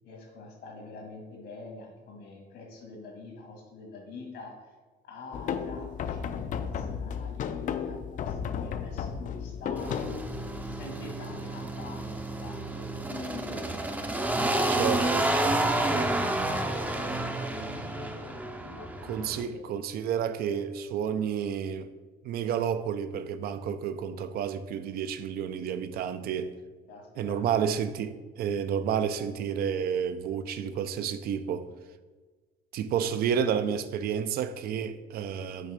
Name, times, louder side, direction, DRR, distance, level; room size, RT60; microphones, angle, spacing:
voice 1, 0.0-4.7 5.0-10.1 10.6-13.7 14.1-19.8 26.9-27.4, left 3 dB, 80° left, 1.8 m, -45 dB
sound 1, 5.3-10.9, left 7 dB, 50° left, 0.4 m, -34 dB
sound 2, 9.8-19.4, right 2 dB, 10° right, 0.5 m, -30 dB
voice 2, 14.7-15.5 19.0-21.9 22.2-26.5 27.2-31.7 32.7-35.7, right 8 dB, 65° right, 0.4 m, -30 dB
5.7 x 3.3 x 5.1 m
cardioid pair, 110°, 17 cm